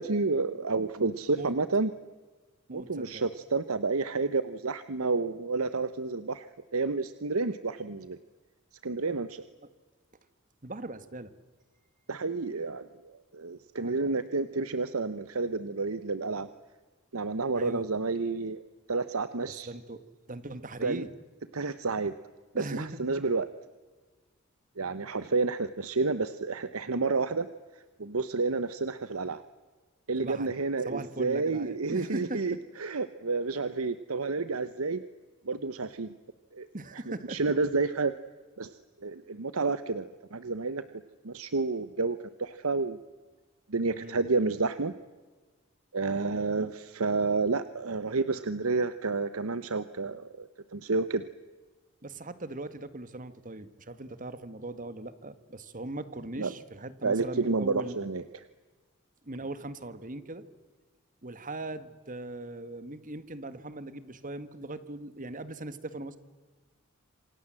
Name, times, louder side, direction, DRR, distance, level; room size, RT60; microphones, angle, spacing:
voice 1, 0.0-1.9 2.7-6.5 6.7-8.2 8.8-9.4 12.1-16.5 17.1-18.6 18.9-19.7 20.8-21.0 21.5-22.1 22.5-23.5 24.8-27.5 28.0-29.4 30.1-35.0 35.5-36.1 36.5-36.7 37.3-38.1 38.6-38.7 39.0-40.8 41.2-43.0 43.7-44.9 45.9-51.2 56.4-56.5 57.0-58.5, right 3 dB, 90° right, 13 dB, 1.0 m, -30 dB
voice 2, 2.7-3.2 10.6-11.3 13.8-14.1 17.5-17.8 19.5-20.0 20.3-21.1 22.5-23.0 30.2-30.5 30.9-32.6 36.7-37.5 43.9-44.3 52.0-58.0 59.2-60.4 61.2-66.2, right 2 dB, 40° right, 13 dB, 1.7 m, -39 dB
27.5 x 27.0 x 7.6 m, 1.4 s
head